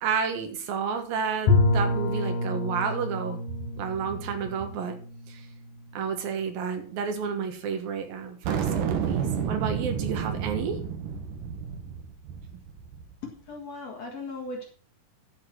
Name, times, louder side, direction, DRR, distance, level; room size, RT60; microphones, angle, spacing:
voice 1, 0.0-5.0 5.3-5.4 5.9-10.8, right 6 dB, 85° right, 6 dB, 3.3 m, -31 dB
Bowed string instrument, 1.5-6.3, left 2 dB, 70° left, 2.9 m, -28 dB
sound 1, 8.4-13.1, right 7 dB, 70° right, 2.8 m, -30 dB
voice 2, 13.2-14.6, left 3 dB, 55° left, 0 dB, 2.5 m, -37 dB
10.5 x 6.8 x 6.1 m, 0.43 s
omnidirectional pair, 4.0 m